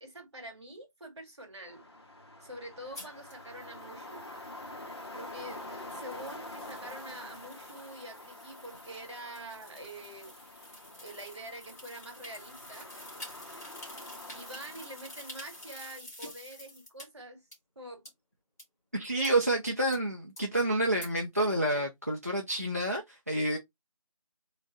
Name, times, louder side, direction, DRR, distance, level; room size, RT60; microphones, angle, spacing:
voice 1, 0.0-1.8 2.4-4.3 5.1-10.3 11.0-12.9 14.3-17.4 17.8-18.1 19.2-19.4 20.7-20.8 21.4-21.6, right 1 dB, 50° right, 2.0 m, -46 dB
sound 1, 1.6-16.0, left 2 dB, 45° left, 1.1 m, -47 dB
sound 2, 2.9-17.1 17.5-17.6 18.1-18.2 18.6-18.7 19.2-19.3 19.9-20.0 20.4-20.5 21.0-21.1, left 1 dB, 30° left, 1.8 m, -50 dB
voice 2, 18.9-23.6, right 1 dB, 25° right, 0.5 m, -29 dB
3.5 x 3.2 x 3.9 m
figure-of-eight pair, 175°, 18 cm